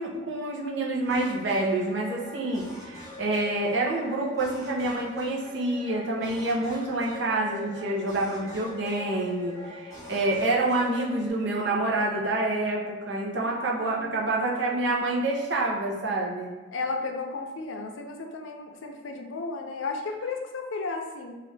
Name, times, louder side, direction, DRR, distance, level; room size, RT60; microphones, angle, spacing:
voice 1, 0.0-16.5, right 2 dB, 65° right, -2 dB, 0.7 m, -27 dB
sound 1, 1.0-11.3, left 2 dB, 15° left, 0.6 m, -43 dB
voice 2, 13.3-14.9 16.7-21.4, left 3 dB, 90° left, 3 dB, 0.5 m, -34 dB
3.1 x 2.4 x 3.3 m, 1.3 s
head